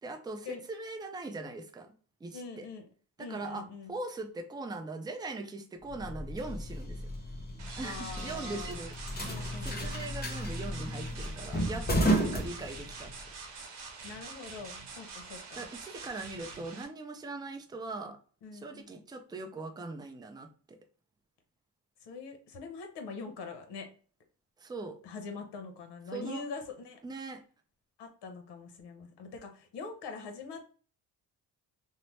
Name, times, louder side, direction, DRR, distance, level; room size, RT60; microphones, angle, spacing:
voice 1, 0.0-1.9 2.2-2.7 3.2-7.1 7.8-9.0 9.6-13.1 15.5-18.2 18.5-20.8 24.6-25.0 26.1-26.4 27.0-27.4, right 3 dB, 10° right, 6 dB, 0.4 m, -40 dB
voice 2, 2.3-2.9 3.2-3.9 7.8-8.8 9.2-10.1 13.7-15.7 18.4-19.0 22.0-23.9 25.0-27.0 28.0-30.7, left 4 dB, 70° left, 5 dB, 0.8 m, -43 dB
sound 1, 5.9-13.2, right 1 dB, 25° left, 0.7 m, -33 dB
sound 2, 7.6-16.8, right 4 dB, 80° right, 0.9 m, -45 dB
2.7 x 2.1 x 3.1 m, 0.40 s
cardioid pair, 80°, 42 cm